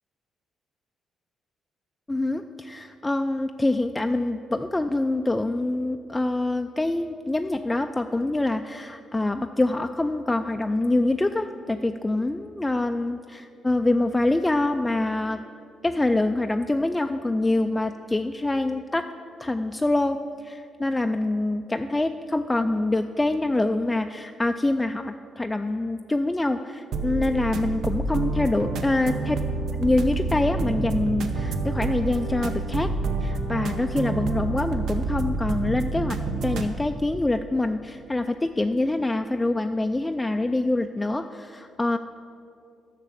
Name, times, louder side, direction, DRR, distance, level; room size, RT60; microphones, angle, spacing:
voice 1, 2.1-15.4 15.8-19.1 19.4-20.2 20.4-29.4 29.8-32.9 33.2-42.0, left 2 dB, 15° left, 6 dB, 0.3 m, -25 dB
sound 1, 26.9-36.7, right 3 dB, 75° right, 0.8 m, -28 dB
10.5 x 5.9 x 7.4 m, 2.6 s
cardioid pair, 90°, 0 cm